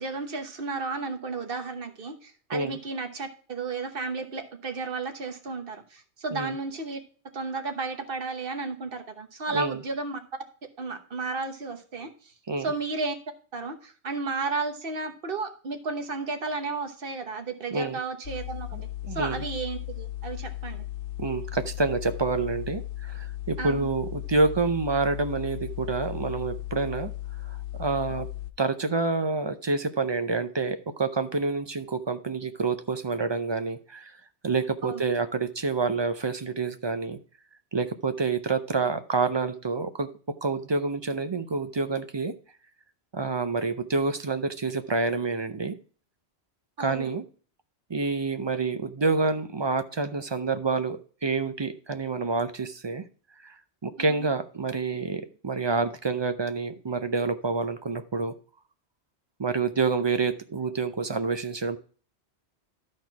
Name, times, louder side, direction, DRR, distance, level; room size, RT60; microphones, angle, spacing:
voice 1, 0.0-7.0 7.3-10.2 10.8-13.1 13.5-18.7 19.1-20.8 23.6-23.9 34.8-35.0 46.8-47.1 54.0-54.3, right 4 dB, 55° right, 6 dB, 1.3 m, -33 dB
sound 1, 18.2-28.5, left 14 dB, 60° left, 0.7 m, -36 dB
voice 2, 19.0-19.4 21.2-27.1 27.8-28.3 28.6-34.1 34.4-37.2 37.7-40.1 40.4-42.3 43.1-45.8 46.8-47.2 47.9-53.0 53.4-53.5 53.8-58.3 59.4-61.8, right 4 dB, 35° right, 10 dB, 0.5 m, -28 dB
12.5 x 4.4 x 4.6 m, 0.41 s
omnidirectional pair, 1.1 m